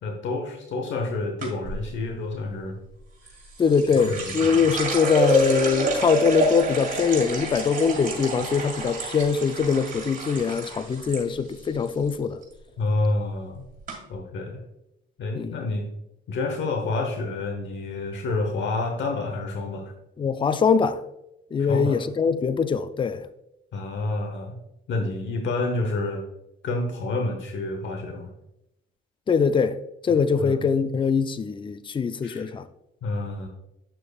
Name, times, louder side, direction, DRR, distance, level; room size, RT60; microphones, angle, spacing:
voice 1, 0.0-2.8 3.2-3.3 4.0-4.7 12.8-13.6 14.1-14.6 15.2-15.9 16.3-19.9 21.6-22.0 23.7-24.6 24.9-26.2 26.6-28.3 30.1-30.6 32.2-32.5 33.0-33.5, left 2 dB, 70° left, 1.0 m, -29 dB
sound 1, 1.4-1.8 3.3-11.2 11.5-12.1 12.4-12.8 13.4-13.5 13.9-14.0, right 3 dB, 45° right, 2.5 m, -28 dB
voice 2, 3.6-12.4 15.4-15.5 20.2-21.0 21.5-23.2 29.3-29.8 30.0-32.6, left 6 dB, 25° left, 0.4 m, -22 dB
8.9 x 6.4 x 2.4 m
cardioid pair, 90°, 20 cm